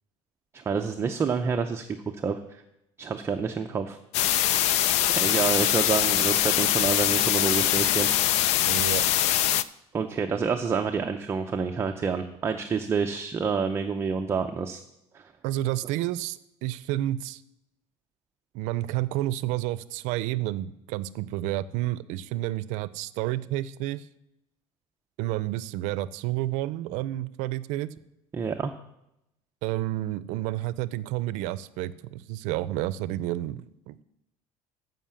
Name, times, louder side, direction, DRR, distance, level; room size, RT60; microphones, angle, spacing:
voice 1, 0.5-1.9 2.2-2.6 3.0-4.0 5.1-8.5 9.9-14.8 15.1-15.2 28.3-28.7, right 5 dB, 20° right, 5 dB, 0.5 m, -28 dB
sound 1, 4.1-9.6, left 12 dB, 60° left, 0.4 m, -23 dB
voice 2, 8.5-9.0 15.4-17.4 18.5-24.1 25.2-27.9 29.6-34.0, right 15 dB, 80° right, 16 dB, 0.5 m, -30 dB
15.0 x 5.6 x 7.0 m, 0.86 s
cardioid pair, 165°, 12 cm